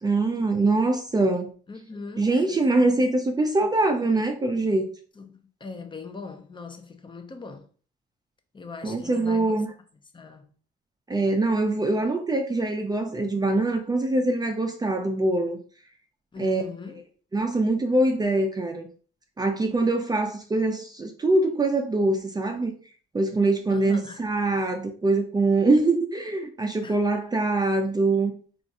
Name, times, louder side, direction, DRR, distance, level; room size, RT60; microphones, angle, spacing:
voice 1, 0.0-1.5 2.2-4.9 8.8-9.7 11.1-15.6 16.4-16.6 17.3-18.9 19.4-22.7 23.1-28.3, right 2 dB, 20° right, 0.4 m, -23 dB
voice 2, 1.7-2.4 5.2-7.7 8.5-9.6 10.1-10.5 16.3-17.0 23.7-24.2 26.8-27.0, left 4 dB, 25° left, 0.6 m, -40 dB
3.6 x 2.4 x 2.6 m
cardioid pair, 90°, 20 cm